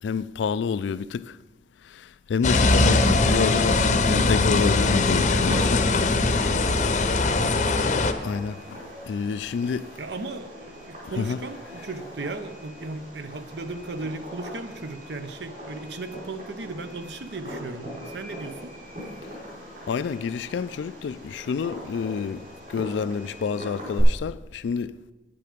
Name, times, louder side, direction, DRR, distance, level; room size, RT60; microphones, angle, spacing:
voice 1, 0.0-1.4 1.8-5.8 8.2-10.0 11.2-11.4 19.9-25.0, left 6 dB, 80° left, 0.3 m, -28 dB
sound 1, 2.4-8.1, left 3 dB, 40° left, 0.7 m, -21 dB
Fireworks, 5.0-24.0, equal, 50° right, 4.4 m, -40 dB
voice 2, 6.2-6.7 7.3-7.6 10.0-18.7, right 3 dB, 70° right, 0.8 m, -36 dB
9.7 x 9.4 x 5.1 m
head